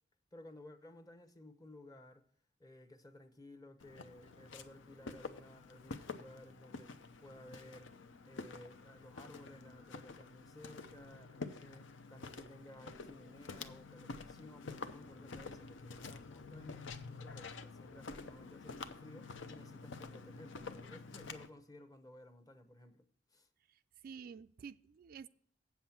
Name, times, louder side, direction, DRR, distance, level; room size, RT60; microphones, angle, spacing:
voice 1, 0.3-2.2 2.6-7.9 8.2-23.5, left 1 dB, 20° left, 0.8 m, -56 dB
Walk footsteps, 3.8-21.5, left 4 dB, 75° left, 0.7 m, -49 dB
voice 2, 23.7-25.3, right 6 dB, 50° right, 0.3 m, -51 dB
8.2 x 7.2 x 5.8 m
head